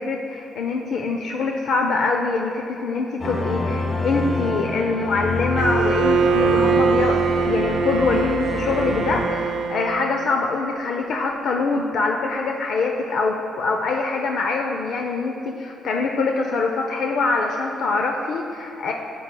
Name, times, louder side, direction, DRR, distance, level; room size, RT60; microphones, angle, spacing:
voice 1, 0.0-18.9, left 3 dB, 70° left, 2 dB, 0.5 m, -24 dB
sound 1, 3.2-9.2, left 2 dB, 35° left, 1.2 m, -26 dB
Bowed string instrument, 5.6-10.3, right 6 dB, 75° right, 0.3 m, -23 dB
10.0 x 7.6 x 2.2 m, 2.8 s
cardioid pair, 90°, 0 cm